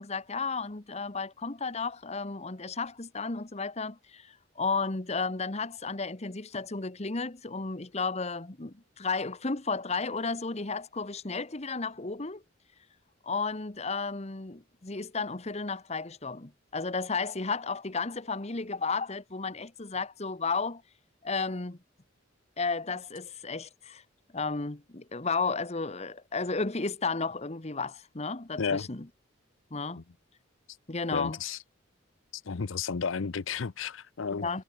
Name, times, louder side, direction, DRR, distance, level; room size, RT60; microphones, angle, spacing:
voice 1, 0.0-12.4 13.2-20.8 21.2-21.8 22.6-24.0 24.3-29.1 29.7-30.0 30.9-31.4 34.3-34.6, left 4 dB, 35° left, 1.2 m, -33 dB
voice 2, 31.1-31.6 32.5-34.6, left 5 dB, 80° left, 0.7 m, -32 dB
head